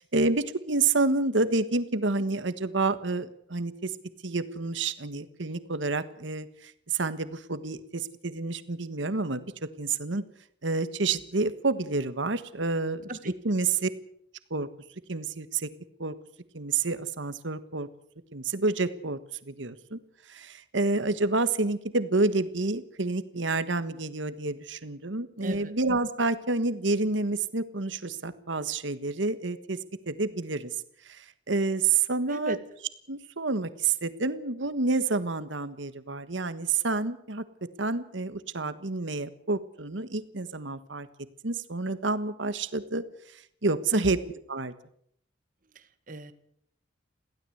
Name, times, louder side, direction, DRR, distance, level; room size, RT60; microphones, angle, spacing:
voice 1, 0.1-3.9 4.2-9.5 9.8-10.2 10.6-13.0 13.4-13.9 14.5-14.7 15.1-15.7 16.0-16.1 16.5-17.9 18.3-19.2 19.4-20.0 20.3-29.8 30.1-30.7 31.0-32.6 33.1-37.4 37.8-41.1 41.4-43.0 43.3-44.2 44.5-44.7, right 3 dB, 80° right, 12 dB, 1.4 m, -29 dB
voice 2, 45.7-46.3, right 1 dB, 45° right, 11 dB, 1.8 m, -35 dB
22.5 x 16.0 x 7.9 m, 0.68 s
head